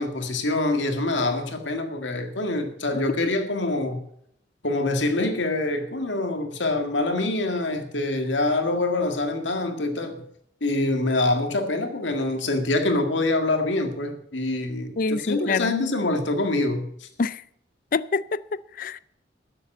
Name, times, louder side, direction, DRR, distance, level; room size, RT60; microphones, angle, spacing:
voice 1, 0.0-4.0 4.6-10.2 10.6-17.1, left 2 dB, 90° left, 2.0 m, -25 dB
voice 2, 15.0-15.7 17.2-17.4 17.9-19.0, left 4 dB, 45° left, 0.4 m, -26 dB
12.5 x 7.6 x 7.8 m
head